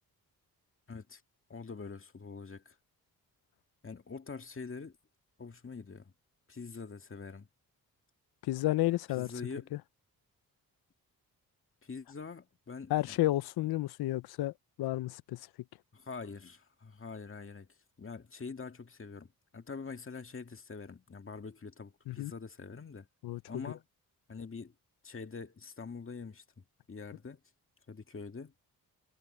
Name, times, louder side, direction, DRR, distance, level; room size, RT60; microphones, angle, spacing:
voice 1, 0.9-1.2 1.5-2.8 3.8-4.9 5.4-6.1 6.5-7.5 9.1-9.7 11.8-13.2 15.9-17.7 18.0-23.1 23.5-23.8 24.3-24.7 25.0-26.4 26.9-27.4 27.9-28.5, left 4 dB, 35° left, 2.2 m, -44 dB
voice 2, 8.5-9.3 12.9-15.4 22.1-22.3 23.2-23.4, left 16 dB, 85° left, 0.6 m, -31 dB
cardioid pair, 70°, 37 cm